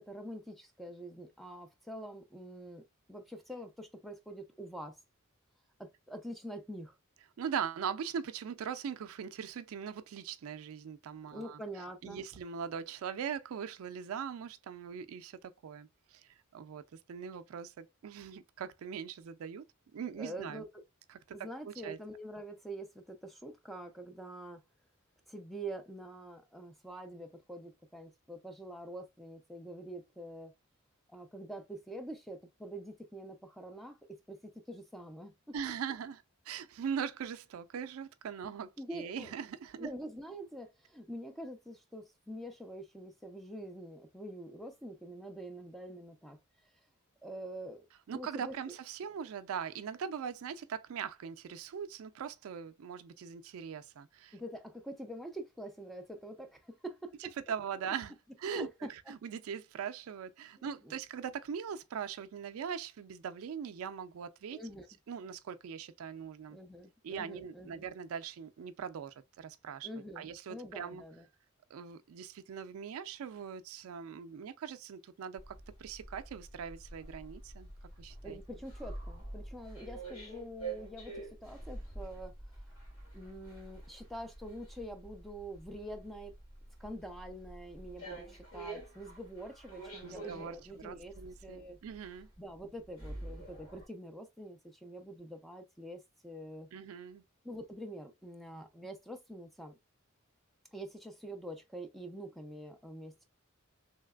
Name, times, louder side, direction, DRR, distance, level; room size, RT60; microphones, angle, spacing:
voice 1, 0.0-5.0 5.8-7.0 11.3-12.2 20.2-20.7 21.3-24.6 25.3-30.5 31.1-34.0 34.3-34.4 34.7-35.4 38.8-39.3 39.8-46.4 47.2-47.9 48.1-48.5 54.3-57.1 58.5-58.9 60.8-60.9 64.5-64.9 66.5-67.9 69.8-71.3 78.2-82.3 83.1-86.3 86.8-91.1 91.4-91.8 92.4-96.7 97.4-99.8 100.7-103.2, right 1 dB, ahead, 0.4 m, -45 dB
voice 2, 7.4-11.6 12.0-19.6 19.9-20.6 21.1-22.0 35.5-39.9 48.1-54.4 57.2-64.6 65.1-66.6 67.0-69.9 70.2-71.0 71.7-77.7 78.0-78.4 90.0-92.3 96.7-97.2, right 7 dB, 75° right, 0.4 m, -41 dB
sound 1, 75.4-93.9, right 2 dB, 65° left, 1.8 m, -47 dB
3.2 x 2.8 x 2.2 m
head